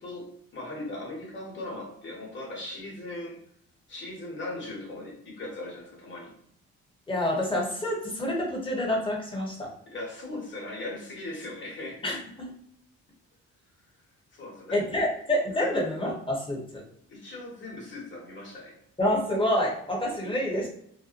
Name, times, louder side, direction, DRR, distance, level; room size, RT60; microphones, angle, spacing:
voice 1, 0.0-3.4 3.9-6.3 9.9-12.0 14.3-14.8 15.6-15.7 17.1-18.8 20.2-20.3, left 2 dB, 40° left, -4 dB, 1.2 m, -39 dB
voice 2, 7.1-9.7 12.0-12.5 14.7-16.6 19.0-20.7, left 1 dB, 15° left, -1 dB, 0.9 m, -27 dB
2.6 x 2.1 x 2.5 m, 0.70 s
cardioid pair, 90°, 30 cm